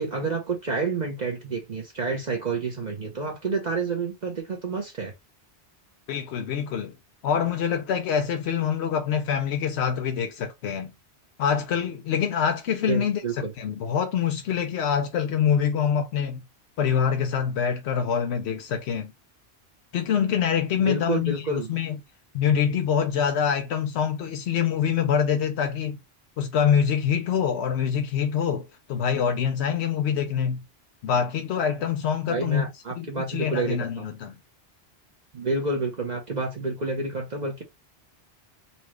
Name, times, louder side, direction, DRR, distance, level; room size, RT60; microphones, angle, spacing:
voice 1, 0.0-5.1 12.9-13.5 20.8-21.7 32.3-34.1 35.3-37.6, right 3 dB, 45° right, 0.9 m, -29 dB
voice 2, 6.1-6.9 7.2-10.9 11.4-16.4 16.8-19.1 19.9-22.0 22.3-26.0 26.4-30.6 31.0-32.7 33.0-34.3, left 7 dB, 85° left, 0.9 m, -25 dB
4.2 x 2.3 x 3.1 m
omnidirectional pair, 1.1 m